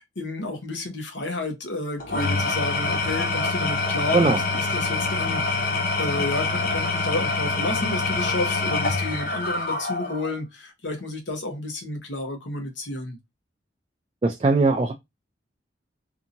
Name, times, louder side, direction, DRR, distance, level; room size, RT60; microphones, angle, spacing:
voice 1, 0.0-13.2, left 2 dB, 70° left, 0.9 m, -31 dB
Engine / Tools, 2.0-10.3, left 3 dB, 50° left, 0.6 m, -25 dB
voice 2, 14.2-14.9, right 3 dB, 30° right, 0.3 m, -19 dB
2.7 x 2.7 x 2.5 m
head